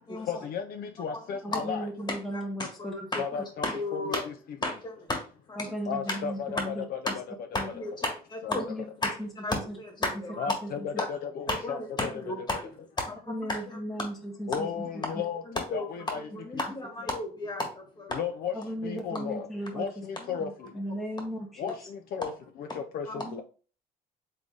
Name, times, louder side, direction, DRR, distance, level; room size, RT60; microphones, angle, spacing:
voice 1, 0.3-1.9 3.2-3.7 3.9-4.3 5.9-7.2 8.4-8.5 10.4-12.1 14.5-15.4 15.7-16.3 18.1-18.5 18.8-19.5 19.7-20.7 21.6-22.3 22.6-22.7 22.9-23.4, left 7 dB, 60° left, 5 dB, 0.5 m, -34 dB
voice 2, 1.4-2.9 5.6-6.8 7.6-7.7 8.5-9.8 10.6-10.7 13.3-14.8 18.5-19.9 20.4-21.7 23.1-23.4, equal, ahead, 1 dB, 0.8 m, -36 dB
voice 3, 2.1-4.2 4.6-5.7 6.1-6.2 7.5-8.6 9.0-9.1 9.4-10.6 11.5-12.7 13.0-13.8 15.5-15.9 16.1-18.2 20.3-20.5 22.7-22.8 23.1-23.2, left 2 dB, 25° left, 2 dB, 1.6 m, -33 dB
3.9 x 3.2 x 3.5 m, 0.38 s
cardioid pair, 110°, 17 cm